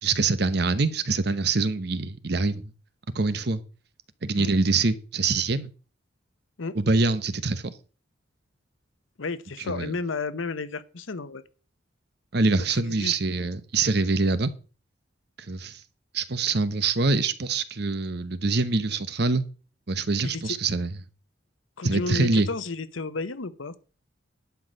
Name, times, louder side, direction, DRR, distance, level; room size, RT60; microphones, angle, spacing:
voice 1, 0.0-2.7 3.1-3.6 4.2-5.7 6.7-7.7 9.7-9.9 12.3-14.5 15.4-15.8 16.1-19.4 19.9-20.9 21.8-22.5, right 3 dB, 55° right, 0.9 m, -24 dB
voice 2, 9.2-11.4 12.7-13.2 20.2-20.6 21.8-23.7, left 3 dB, 85° left, 0.9 m, -32 dB
11.5 x 4.8 x 7.6 m
head